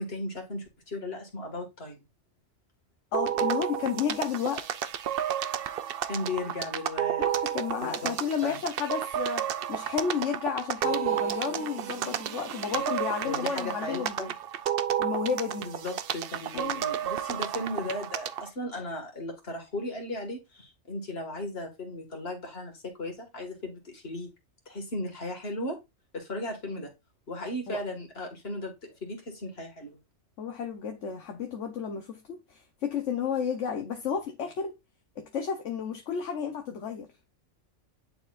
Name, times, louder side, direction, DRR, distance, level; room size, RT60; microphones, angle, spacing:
voice 1, 0.0-2.0 6.1-7.3 7.8-8.2 8.4-8.5 12.7-12.8 13.2-14.0 15.6-24.3 24.7-25.8 26.1-26.9 27.3-30.0, left 1 dB, 50° left, 2.2 m, -36 dB
voice 2, 3.1-4.6 7.2-14.3 15.0-15.7 16.5-16.8 27.7-27.8 30.4-32.2 32.5-34.7 35.2-37.1, left 7 dB, 65° left, 1.3 m, -32 dB
sound 1, 3.1-18.5, right 10 dB, 60° right, 0.6 m, -31 dB
10.0 x 4.5 x 2.5 m
omnidirectional pair, 1.4 m